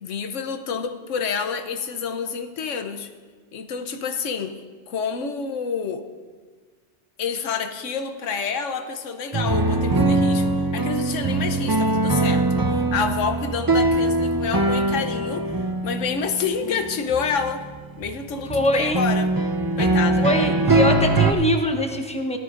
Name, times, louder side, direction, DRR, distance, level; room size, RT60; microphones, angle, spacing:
voice 1, 0.0-3.1 3.5-4.6 4.9-6.1 7.2-15.5 15.8-17.6 18.0-19.3 19.8-20.3, left 6 dB, 85° left, 7 dB, 1.2 m, -28 dB
sound 1, 9.3-21.3, right 2 dB, 35° right, 0.3 m, -22 dB
voice 2, 18.5-19.0 20.2-22.4, left 1 dB, 5° left, 4 dB, 0.7 m, -23 dB
17.5 x 13.0 x 2.5 m, 1.5 s
omnidirectional pair, 1.2 m